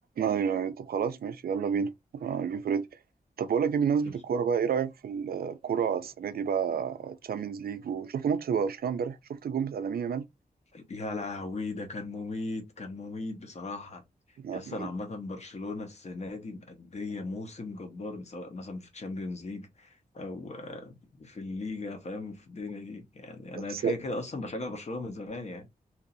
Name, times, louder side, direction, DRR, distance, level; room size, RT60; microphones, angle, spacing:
voice 1, 0.2-2.9 3.4-10.3 14.4-14.9 23.6-23.9, right 7 dB, 75° right, 0.5 m, -30 dB
voice 2, 10.7-14.0 14.5-25.7, left 2 dB, 45° left, 1.1 m, -37 dB
2.9 x 2.8 x 3.9 m
wide cardioid pair, 160°, 16 cm